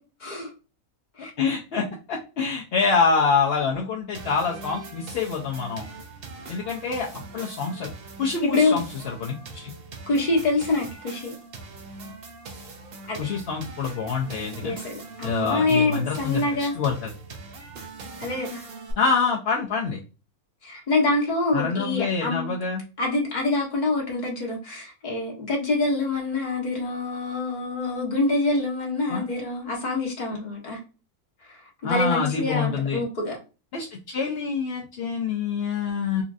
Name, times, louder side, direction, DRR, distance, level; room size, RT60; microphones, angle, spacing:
voice 1, 0.2-0.5 1.2-1.3 8.4-8.8 10.1-11.3 13.1-13.2 14.6-16.7 18.2-18.7 20.6-22.5 23.0-30.8 31.4-33.4, left 2 dB, 35° left, 1.0 m, -26 dB
voice 2, 1.2-5.8 6.5-7.9 8.2-9.7 13.2-14.8 15.2-17.1 19.0-20.0 21.5-22.8 29.1-29.3 31.8-33.0 33.7-36.2, left 5 dB, 60° left, 0.6 m, -26 dB
sound 1, 4.1-18.9, right 3 dB, 55° right, 0.7 m, -42 dB
3.9 x 2.4 x 2.5 m
omnidirectional pair, 1.6 m